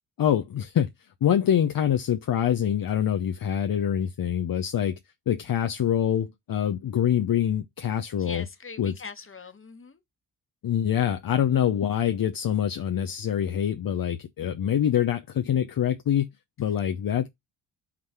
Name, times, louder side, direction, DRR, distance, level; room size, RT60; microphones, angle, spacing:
voice 1, 0.2-0.9 1.2-5.0 5.3-8.4 8.8-8.9 10.6-16.3 16.6-17.3, left 9 dB, 45° left, 0.7 m, -25 dB
voice 2, 8.1-10.0, left 4 dB, 25° left, 1.4 m, -42 dB
6.0 x 3.1 x 5.5 m
supercardioid pair, 50°, 47 cm